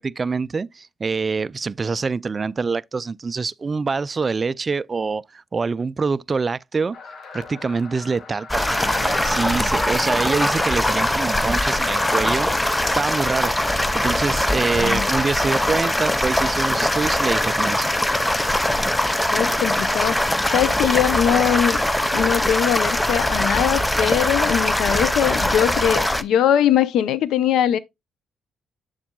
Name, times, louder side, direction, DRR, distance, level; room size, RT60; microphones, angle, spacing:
voice 1, 0.0-7.0 7.3-13.5 13.9-17.9, right 4 dB, 30° right, 0.3 m, -25 dB
sound 1, 6.9-12.9, left 5 dB, 55° left, 1.7 m, -38 dB
sound 2, 8.5-26.2, left 1 dB, 10° left, 0.6 m, -21 dB
voice 2, 14.7-15.1 19.3-20.2 20.5-21.8 22.1-27.8, left 10 dB, 80° left, 0.6 m, -21 dB
8.0 x 7.3 x 2.3 m
cardioid pair, 100°, 0 cm